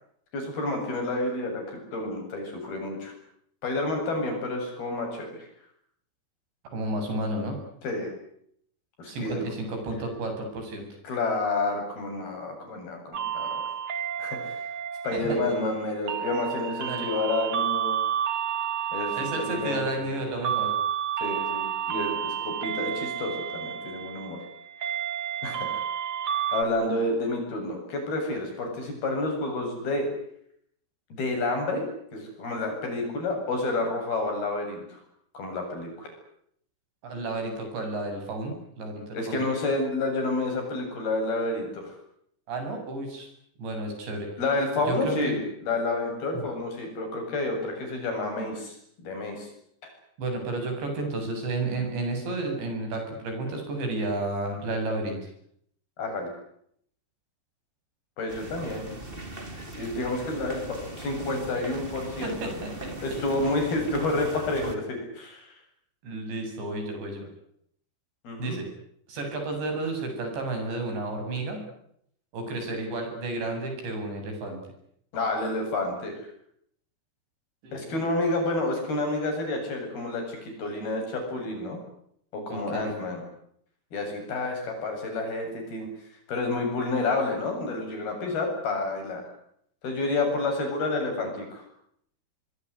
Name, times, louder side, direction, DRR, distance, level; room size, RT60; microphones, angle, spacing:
voice 1, 0.3-3.1 3.6-5.5 7.8-8.1 9.0-9.4 11.0-13.6 14.2-14.6 15.0-18.0 18.9-20.1 21.2-24.4 25.4-25.8 26.5-30.1 31.1-31.9 32.1-35.0 35.3-36.1 39.1-41.9 44.4-49.5 56.0-56.3 58.2-58.9 59.8-62.4 63.0-65.5 68.2-68.6 75.1-76.1 77.7-81.8 82.3-83.2 83.9-85.9 86.3-89.2 89.8-91.6, left 2 dB, 60° left, 3 dB, 9.7 m, -29 dB
voice 2, 6.7-7.6 9.1-10.9 15.1-15.5 16.9-17.1 19.2-20.7 37.0-39.5 42.5-43.3 43.6-44.3 44.9-45.4 50.2-55.2 62.2-62.9 66.0-67.3 68.4-68.6 69.1-71.6 72.3-74.6 77.6-77.7 82.5-82.8, right 2 dB, 85° right, 4 dB, 10.0 m, -31 dB
sound 1, 13.1-26.6, right 9 dB, 60° right, 1.4 m, -31 dB
sound 2, 58.3-64.8, right 2 dB, 15° right, 2.4 m, -40 dB
25.0 x 22.5 x 10.0 m, 0.70 s
omnidirectional pair, 5.0 m